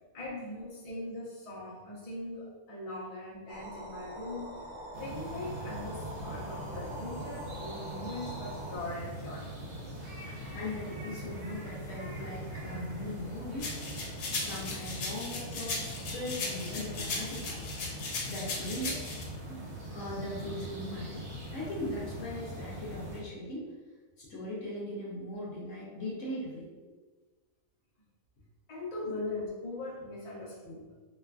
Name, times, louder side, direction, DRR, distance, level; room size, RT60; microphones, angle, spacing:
voice 1, 0.1-4.6 5.0-9.5 28.7-30.9, left 2 dB, 40° left, -7 dB, 0.5 m, -40 dB
sound 1, 3.5-8.8, right 1 dB, 45° right, 0.8 m, -44 dB
sound 2, 4.9-23.2, equal, 75° right, 1.3 m, -42 dB
voice 2, 10.5-13.9 14.3-17.9 18.2-19.0 19.5-19.6 19.9-21.2 21.5-23.7 24.2-26.7 29.1-29.2, left 1 dB, 60° left, -6 dB, 0.9 m, -39 dB
sound 3, 13.6-19.2, left 3 dB, 90° left, 1.1 m, -37 dB
3.1 x 2.4 x 2.3 m, 1.3 s
omnidirectional pair, 1.6 m